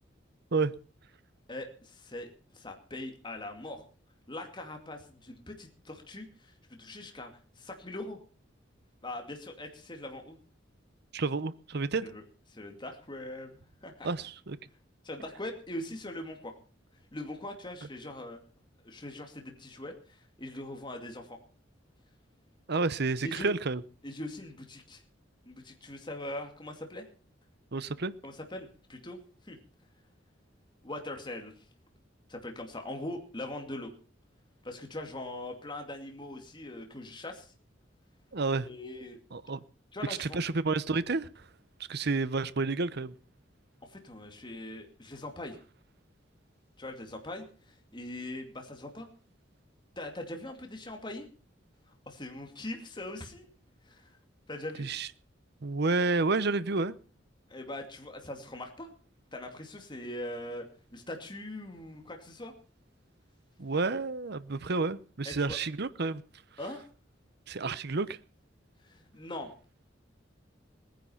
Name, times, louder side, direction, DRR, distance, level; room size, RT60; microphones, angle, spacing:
voice 1, 1.5-3.8 4.3-6.5 6.8-7.3 7.6-8.2 9.0-10.4 12.0-12.2 12.5-13.5 13.8-14.1 15.0-16.5 17.1-18.4 18.8-21.4 23.2-23.5 24.0-25.0 25.4-27.1 28.2-29.2 29.4-29.6 30.8-31.6 32.3-33.9 34.6-37.5 38.6-39.2 39.9-40.4 43.9-45.6 46.8-49.1 50.0-51.3 52.1-53.5 53.8-54.2 54.5-54.9 57.5-58.9 59.3-60.6 60.9-62.5 64.7-64.8 65.2-65.6 66.6-66.9 68.8-69.5, left 1 dB, 25° left, 2.5 m, -41 dB
voice 2, 11.1-12.1 14.0-14.6 22.7-23.8 27.7-28.1 38.3-38.7 39.3-39.6 40.1-41.3 41.9-43.1 54.8-55.1 55.6-56.9 63.6-66.2 67.5-68.2, right 3 dB, 60° right, 0.9 m, -30 dB
19.0 x 10.5 x 5.7 m
head